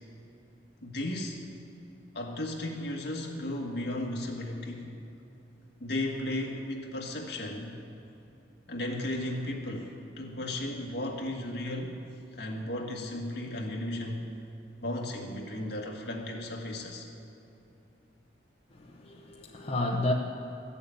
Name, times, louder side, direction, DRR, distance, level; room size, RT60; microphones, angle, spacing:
voice 1, 0.8-1.4 2.1-4.9 5.8-7.8 8.7-12.0 12.4-14.2 14.8-17.1, left 1 dB, 60° left, 0 dB, 1.8 m, -35 dB
voice 2, 18.8-20.1, left 2 dB, 35° left, -2 dB, 0.9 m, -31 dB
14.0 x 7.1 x 9.0 m, 2.8 s
head